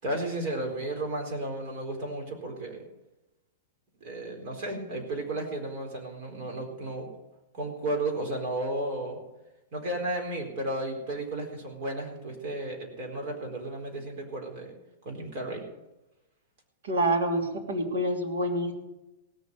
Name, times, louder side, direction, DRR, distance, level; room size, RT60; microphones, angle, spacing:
voice 1, 0.0-2.8 4.0-7.1 7.5-9.2 9.7-14.7 15.0-15.6, right 1 dB, 45° right, 2 dB, 4.2 m, -33 dB
voice 2, 16.8-18.7, right 1 dB, 75° right, 1 dB, 3.1 m, -27 dB
17.5 x 7.0 x 7.7 m, 0.99 s
supercardioid pair, 150°, 0 cm